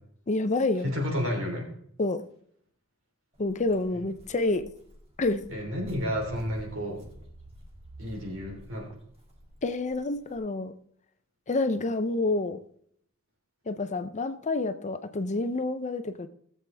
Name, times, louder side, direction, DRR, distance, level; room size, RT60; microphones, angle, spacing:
voice 1, 0.3-0.9 2.0-2.2 3.4-4.6 5.2-5.4 9.6-10.7 11.5-12.6 13.7-16.3, left 2 dB, 35° left, 10 dB, 0.6 m, -28 dB
voice 2, 0.8-1.7 5.5-7.0 8.0-8.9, equal, 70° right, 0 dB, 3.5 m, -31 dB
Walk footsteps, 3.3-10.4, right 1 dB, 30° right, 1.9 m, -50 dB
17.0 x 7.6 x 3.4 m, 0.64 s
head